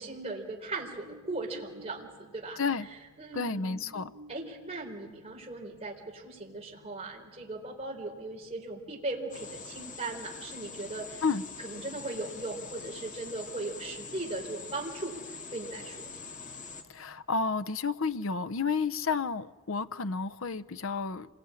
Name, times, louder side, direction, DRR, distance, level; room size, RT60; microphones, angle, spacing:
voice 1, 0.0-2.6 3.2-3.9 4.3-11.2 11.6-16.1, right 2 dB, 30° right, -1 dB, 4.0 m, -38 dB
sound 1, 0.6-17.0, right 1 dB, 85° right, 3.9 m, -58 dB
voice 2, 2.6-2.9 3.3-4.1 11.2-11.4 16.9-21.4, left 4 dB, 60° left, 11 dB, 0.8 m, -31 dB
sound 2, 9.3-16.8, left 4 dB, 35° left, 2.1 m, -44 dB
27.0 x 21.5 x 9.8 m, 1.5 s
head